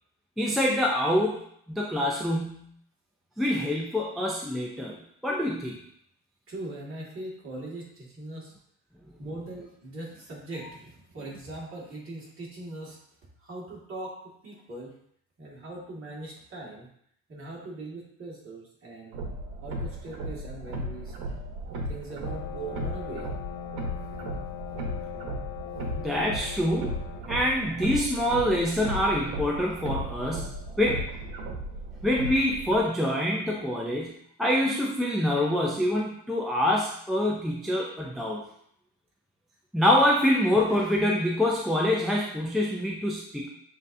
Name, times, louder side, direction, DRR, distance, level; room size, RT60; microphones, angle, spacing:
voice 1, 0.4-1.4 1.7-2.7 3.4-5.0 5.2-5.8 26.0-31.0 32.0-34.1 34.4-38.4 39.7-43.5, left 1 dB, ahead, -3 dB, 0.3 m, -26 dB
voice 2, 6.5-8.5 9.2-13.0 13.4-14.2 14.4-14.9 15.4-16.9 17.3-19.2 19.6-21.2 21.9-23.3, right 2 dB, 35° right, -5 dB, 1.8 m, -40 dB
sound 1, 19.1-32.8, right 1 dB, 90° right, 1.0 m, -35 dB
sound 2, 22.2-27.2, left 15 dB, 55° left, 0.6 m, -40 dB
7.4 x 2.7 x 2.6 m, 0.69 s
cardioid pair, 140°, 37 cm